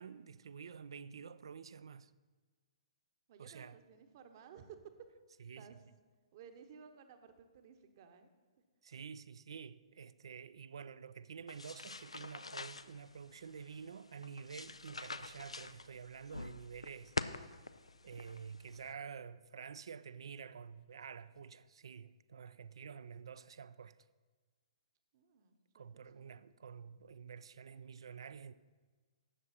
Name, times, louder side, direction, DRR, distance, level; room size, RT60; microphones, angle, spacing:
voice 1, 0.0-2.1 3.4-3.8 5.4-5.7 8.8-17.2 18.0-24.0 25.7-28.5, right 6 dB, 55° right, 0.4 m, -49 dB
voice 2, 3.3-4.9 5.5-5.8 6.3-8.6 25.1-26.4, right 7 dB, 40° right, 0.9 m, -57 dB
sound 1, 11.5-18.9, left 3 dB, 75° left, 0.5 m, -46 dB
12.5 x 8.6 x 4.2 m
figure-of-eight pair, 120°, 3 cm